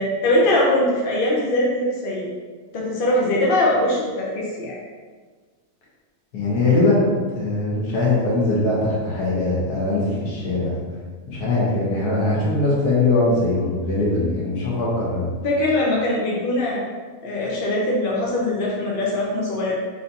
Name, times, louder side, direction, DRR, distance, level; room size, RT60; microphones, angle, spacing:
voice 1, 0.0-2.3 2.7-4.8 15.4-16.9 17.2-19.7, left 1 dB, 55° left, -4 dB, 0.6 m, -21 dB
voice 2, 6.3-7.0 7.3-10.8 11.3-15.3, left 2 dB, 90° left, -7 dB, 1.6 m, -21 dB
4.0 x 2.7 x 4.0 m, 1.5 s
omnidirectional pair, 1.6 m